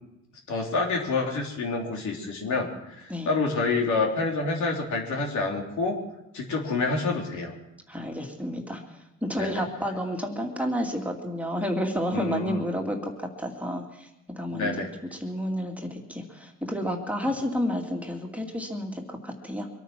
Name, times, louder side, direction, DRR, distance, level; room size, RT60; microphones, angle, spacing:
voice 1, 0.5-6.0 6.3-7.5 9.4-9.6 12.1-12.6 14.5-14.9, left 3 dB, 70° left, 1 dB, 3.2 m, -28 dB
voice 2, 7.9-8.8 9.2-14.1 14.4-14.8 15.1-19.7, equal, 5° right, 1 dB, 2.3 m, -30 dB
24.0 x 9.2 x 6.0 m, 0.87 s
cardioid pair, 90°, 30 cm